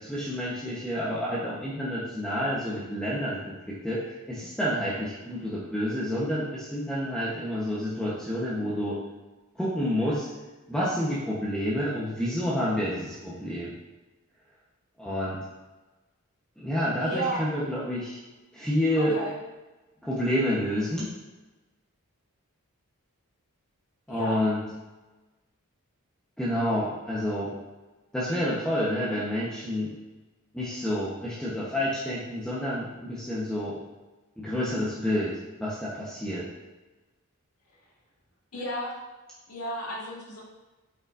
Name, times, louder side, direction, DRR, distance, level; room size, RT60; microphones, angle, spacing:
voice 1, 0.0-9.0 9.6-10.3 10.7-13.7 15.0-15.4 16.6-18.2 18.5-19.2 20.0-21.1 24.1-24.6 26.4-27.5 28.1-29.9 30.5-33.8 34.4-35.3 35.6-36.4, equal, 5° left, -7 dB, 0.9 m, -29 dB
voice 2, 17.0-17.4 18.9-19.3 24.1-24.4 38.5-38.9 39.5-40.4, right 1 dB, 80° left, -4 dB, 1.8 m, -33 dB
7.9 x 5.2 x 2.5 m, 1.2 s
head